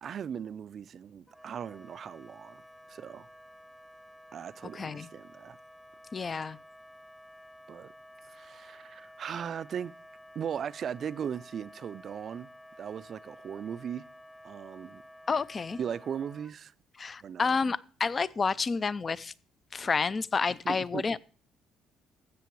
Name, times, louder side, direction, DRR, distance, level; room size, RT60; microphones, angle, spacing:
voice 1, 0.0-2.6 2.9-3.3 4.3-5.6 7.7-7.9 8.3-9.9 10.3-12.5 12.8-14.0 14.4-15.0 15.7-16.7 17.2-17.6 20.7-21.0, right 8 dB, 40° right, 0.4 m, -38 dB
Wind instrument woodwind instrument, 1.3-16.6, equal, 5° left, 0.9 m, -52 dB
voice 2, 4.7-5.1 6.1-6.6 15.3-15.8 17.0-19.3 19.7-21.2, left 4 dB, 25° left, 0.4 m, -30 dB
15.5 x 6.8 x 4.6 m
cardioid pair, 140°, 0 cm